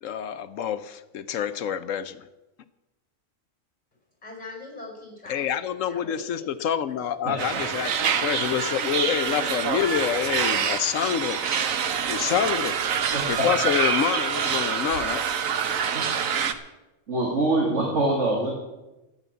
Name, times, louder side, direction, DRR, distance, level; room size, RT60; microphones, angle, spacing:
voice 1, 0.0-2.3 5.3-11.4 12.1-12.8 13.3-15.2, left 9 dB, 75° left, 12 dB, 1.1 m, -27 dB
voice 2, 4.2-6.5 6.9-7.0, left 3 dB, 30° left, 1 dB, 4.9 m, -42 dB
sound 1, 7.4-16.5, right 7 dB, 85° right, 1.3 m, -26 dB
voice 3, 13.1-13.5 15.9-16.1 17.1-18.5, right 2 dB, 60° right, -2 dB, 2.8 m, -24 dB
13.0 x 9.2 x 8.2 m, 1.0 s
omnidirectional pair, 1.4 m